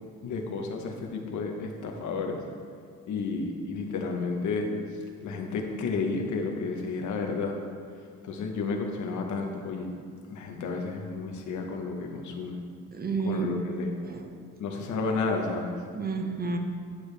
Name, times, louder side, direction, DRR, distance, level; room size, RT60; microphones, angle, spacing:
voice 1, 0.2-2.4 3.1-4.7 5.2-7.6 8.3-9.9 10.3-12.6 13.2-14.0 14.6-15.7, left 4 dB, 70° left, 2 dB, 1.1 m, -31 dB
voice 2, 12.9-13.5 14.1-14.3 15.9-16.6, right 4 dB, 30° right, 5 dB, 0.9 m, -30 dB
10.5 x 6.4 x 3.4 m, 2.3 s
cardioid pair, 90°, 30 cm